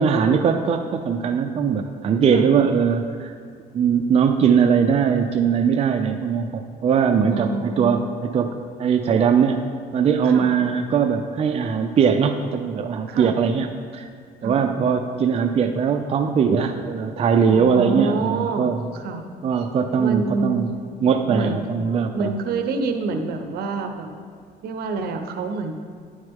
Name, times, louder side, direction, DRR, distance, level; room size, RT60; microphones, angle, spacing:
voice 1, 0.0-3.3 3.7-7.5 7.8-8.1 8.3-9.6 9.9-13.7 13.9-14.1 14.4-18.9 19.4-20.7 21.0-22.3, right 6 dB, 35° right, 5 dB, 0.5 m, -20 dB
voice 2, 7.3-8.1 10.2-10.5 13.1-13.3 14.4-14.6 17.5-19.3 20.0-20.7 21.3-21.6 22.1-24.1 24.6-25.7, right 3 dB, 70° right, 6 dB, 0.8 m, -27 dB
9.8 x 6.3 x 3.6 m, 2.2 s
cardioid pair, 110°, 17 cm